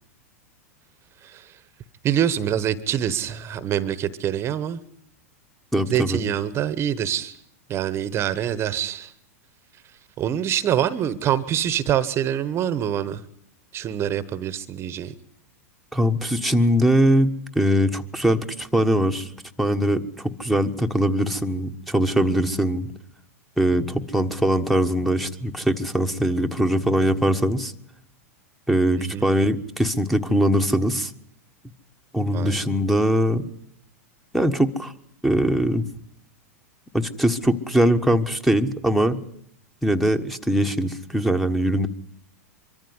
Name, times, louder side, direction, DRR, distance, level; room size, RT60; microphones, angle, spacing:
voice 1, 1.2-1.5 2.0-4.8 5.9-7.4 7.7-9.1 10.2-13.2 13.7-15.1 29.0-29.3 32.3-32.7, right 10 dB, 30° right, 1.2 m, -25 dB
voice 2, 5.7-6.2 15.9-19.3 19.6-22.9 23.6-27.7 28.7-31.1 32.1-33.4 34.3-34.9 35.2-35.8 36.9-39.2 39.8-41.9, equal, ahead, 1.4 m, -21 dB
24.0 x 14.0 x 9.7 m
hypercardioid pair, 115°, 8 cm